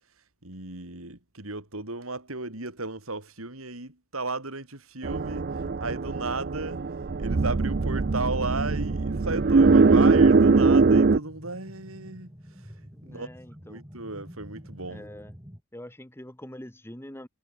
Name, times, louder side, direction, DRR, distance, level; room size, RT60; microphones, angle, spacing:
voice 1, 0.4-6.8 7.2-13.3 13.6-15.1, right 3 dB, 75° right, 4.7 m, -35 dB
sound 1, 5.0-11.2, right 4 dB, 45° right, 0.5 m, -21 dB
sound 2, 7.7-15.6, equal, 15° right, 6.3 m, -47 dB
voice 2, 12.9-13.8 14.9-15.3 15.7-17.3, left 1 dB, 10° left, 1.7 m, -44 dB
head